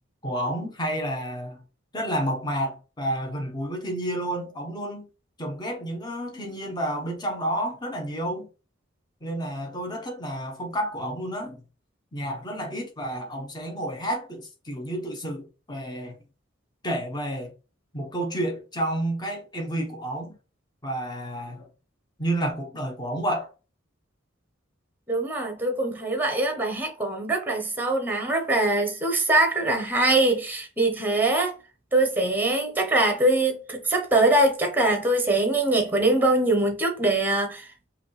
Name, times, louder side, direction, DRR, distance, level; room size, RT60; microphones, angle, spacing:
voice 1, 0.2-1.6 1.9-5.1 5.4-8.5 9.2-11.6 12.1-16.2 16.8-17.5 17.9-20.3 20.8-21.7 22.2-23.5, right 1 dB, 20° left, 1.2 m, -30 dB
voice 2, 25.1-31.5 31.9-37.7, right 2 dB, 10° right, 1.0 m, -23 dB
5.1 x 2.8 x 3.3 m
head